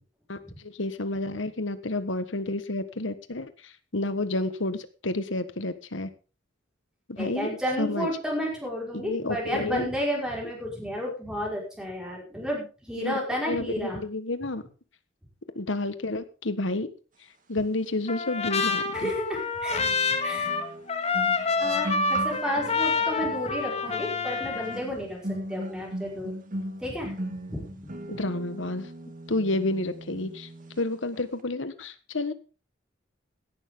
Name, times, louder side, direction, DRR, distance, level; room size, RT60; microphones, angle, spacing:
voice 1, 0.3-6.1 7.1-7.5 7.8-8.1 8.9-9.9 13.0-13.2 13.5-14.6 15.5-16.9 17.5-19.1 28.1-28.9 29.3-30.5 30.8-32.3, left 2 dB, 75° left, 12 dB, 1.5 m, -30 dB
voice 2, 7.2-14.0 18.9-19.9 20.2-20.5 21.6-26.3 26.8-27.2 27.5-27.9, equal, 5° right, -3 dB, 5.3 m, -32 dB
Trumpet, 18.1-24.8, left 4 dB, 35° left, 1.9 m, -27 dB
sound 1, 18.4-18.5 19.8-30.9 31.1-31.4, right 1 dB, 45° right, 1.8 m, -39 dB
16.5 x 11.5 x 3.9 m, 0.35 s
head